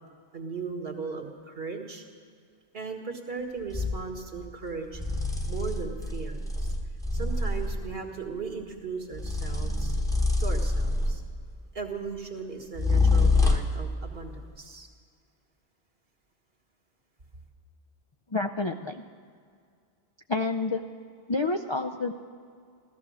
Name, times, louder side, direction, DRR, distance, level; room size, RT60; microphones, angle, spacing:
voice 1, 0.3-2.0 2.7-5.0 5.5-6.7 7.1-10.0 10.4-11.2 11.7-14.9, right 4 dB, 65° right, 3 dB, 1.8 m, -37 dB
sound 1, 3.7-4.0 4.9-7.9 9.1-11.4 12.8-13.9, left 3 dB, 5° left, 1.0 m, -26 dB
voice 2, 18.3-19.0 20.3-20.8 21.3-22.1, left 3 dB, 40° left, 3 dB, 0.4 m, -28 dB
15.0 x 14.5 x 6.2 m, 2.2 s
omnidirectional pair, 1.1 m